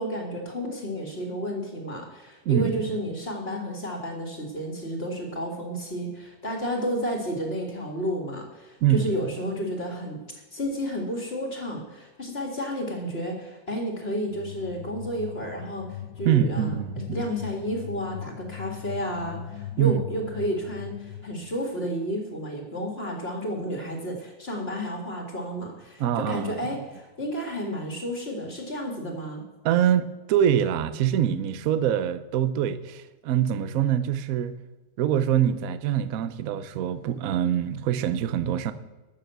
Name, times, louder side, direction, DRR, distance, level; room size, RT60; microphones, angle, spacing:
voice 1, 0.0-10.2 10.5-29.4, equal, 35° left, 2.1 m, -31 dB
voice 2, 2.5-2.8 8.8-9.1 16.2-17.0 19.8-20.0 26.0-26.5 29.6-34.6 35.0-38.7, right 10 dB, 60° right, 1.0 m, -24 dB
sound 1, 14.3-21.7, left 11 dB, 80° left, 1.3 m, -39 dB
12.5 x 6.8 x 8.0 m
omnidirectional pair, 1.9 m